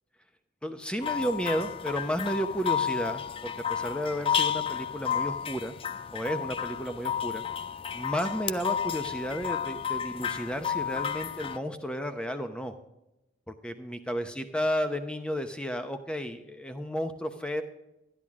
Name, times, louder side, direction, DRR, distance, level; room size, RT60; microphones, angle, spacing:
voice 1, 0.6-5.7 6.1-7.4 7.9-12.7 13.5-17.6, equal, 5° left, 8 dB, 0.8 m, -32 dB
sound 1, 1.0-11.6, left 8 dB, 30° left, 0.4 m, -32 dB
12.0 x 10.5 x 3.6 m, 0.91 s
head